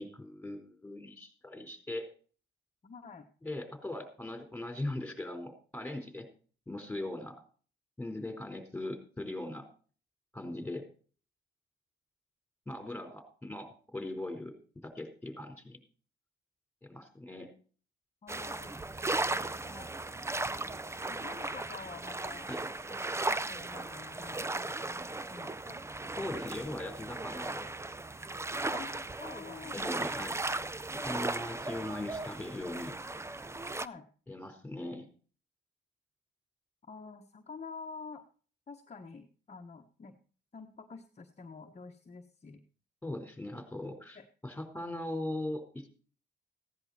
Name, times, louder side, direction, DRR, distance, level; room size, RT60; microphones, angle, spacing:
voice 1, 0.0-2.1 3.4-6.3 6.7-7.4 8.0-9.7 10.3-10.9 12.7-14.5 14.8-15.8 16.9-17.5 22.5-22.6 26.2-27.7 29.7-30.4 31.0-32.9 34.3-35.1 43.0-45.9, left 1 dB, 5° left, 5 dB, 4.3 m, -40 dB
voice 2, 2.8-3.3 18.2-18.7 19.3-19.9 21.1-22.5 22.9-25.8 28.7-29.7 31.1-31.3 33.8-34.1 36.9-38.2 38.7-40.2 40.5-42.6 44.1-44.2, left 5 dB, 35° left, 2 dB, 1.3 m, -48 dB
sound 1, 18.3-33.9, right 2 dB, 15° right, 0.6 m, -37 dB
16.0 x 10.5 x 4.2 m, 0.41 s
cardioid pair, 90°, 20 cm